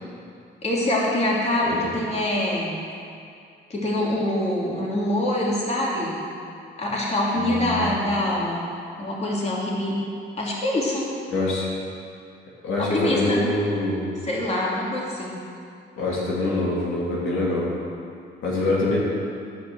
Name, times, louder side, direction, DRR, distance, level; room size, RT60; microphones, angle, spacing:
voice 1, 0.6-2.8 3.7-6.1 6.8-8.6 9.0-10.0 10.4-11.1 12.8-13.4 14.2-15.4, left 1 dB, 35° left, -5 dB, 3.0 m, -25 dB
voice 2, 7.3-8.0 11.3-11.7 12.6-14.1 16.0-17.7 18.4-19.0, left 2 dB, 85° left, -5 dB, 2.8 m, -24 dB
13.5 x 5.5 x 8.0 m, 2.4 s
cardioid pair, 90°, 20 cm